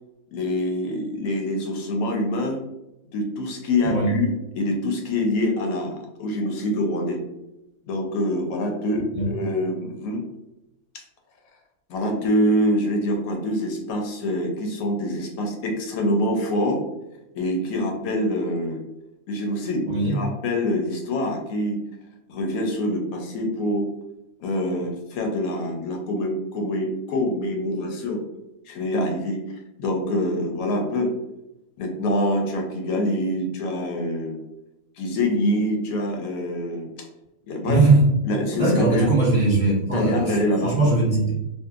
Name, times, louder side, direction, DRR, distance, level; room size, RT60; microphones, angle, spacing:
voice 1, 0.3-2.6 3.1-7.2 7.9-10.2 11.9-16.8 17.3-18.8 19.3-21.8 22.3-23.9 24.4-28.2 28.7-29.4 29.8-31.1 31.8-34.4 35.0-36.9 37.5-37.8 38.2-39.1 39.9-40.7, left 1 dB, 80° left, 2 dB, 1.0 m, -25 dB
voice 2, 37.6-38.0 38.6-41.3, right 2 dB, 30° right, -8 dB, 0.7 m, -20 dB
2.7 x 2.3 x 2.3 m, 0.94 s
omnidirectional pair, 1.5 m